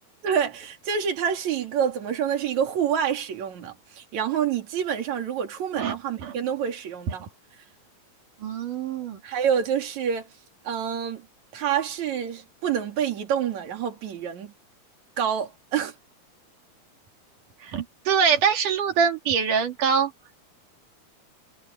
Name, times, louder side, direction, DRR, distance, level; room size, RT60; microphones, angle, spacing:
voice 1, 0.2-7.3 9.2-10.3 10.6-11.3 11.5-14.5 15.2-15.9, right 8 dB, 65° right, 3.9 m, -27 dB
voice 2, 8.4-9.2 17.6-20.1, right 6 dB, 85° right, 3.9 m, -24 dB
omnidirectional pair, 3.6 m